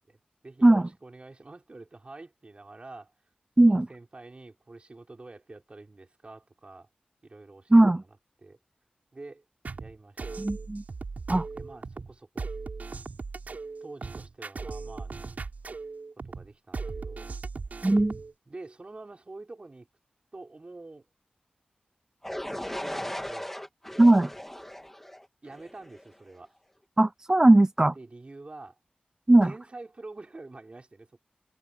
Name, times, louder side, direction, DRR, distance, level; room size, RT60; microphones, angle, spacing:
voice 1, 0.4-3.1 3.7-6.9 7.2-8.6 9.1-9.4 9.8-10.2 11.5-12.5 13.8-15.3 16.2-17.3 18.5-19.9 20.3-21.1 22.4-23.5 25.4-26.5 27.9-28.8 29.4-31.2, right 2 dB, 40° right, 5.8 m, -47 dB
voice 2, 7.7-8.0 10.4-10.8 11.3-11.5 17.8-18.1 24.0-24.3 27.0-27.9 29.3-29.5, right 2 dB, 20° right, 0.6 m, -19 dB
sound 1, 9.6-18.3, right 4 dB, 65° right, 4.7 m, -38 dB
sound 2, 22.2-26.1, left 1 dB, 10° left, 2.2 m, -37 dB
wide cardioid pair, 70°, 3 cm